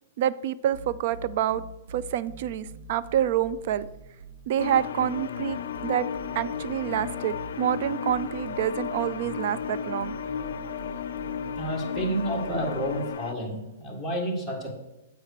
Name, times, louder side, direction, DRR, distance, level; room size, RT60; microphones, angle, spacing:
voice 1, 0.2-1.6 1.9-3.9 4.5-6.1 6.3-10.1, right 11 dB, 50° right, 16 dB, 0.4 m, -27 dB
sound 1, 0.7-13.1, right 3 dB, 75° right, 1.4 m, -45 dB
sound 2, 4.6-13.3, left 7 dB, 70° left, 0.5 m, -34 dB
voice 2, 11.6-14.7, right 1 dB, ahead, -3 dB, 1.8 m, -30 dB
8.2 x 4.5 x 6.6 m, 0.96 s
hypercardioid pair, 145°, 0 cm